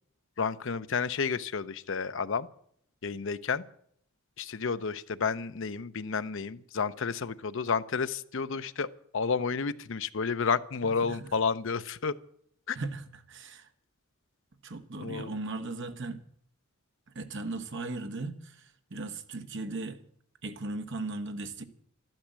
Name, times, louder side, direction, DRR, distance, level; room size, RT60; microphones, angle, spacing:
voice 1, 0.4-2.5 3.0-3.6 4.4-8.9 9.1-12.1 12.7-12.8 15.0-15.3, left 5 dB, 65° left, 0.7 m, -31 dB
voice 2, 12.7-13.7 14.6-16.2 17.1-20.0 20.4-21.6, right 3 dB, 60° right, 1.2 m, -37 dB
12.5 x 12.0 x 7.5 m
head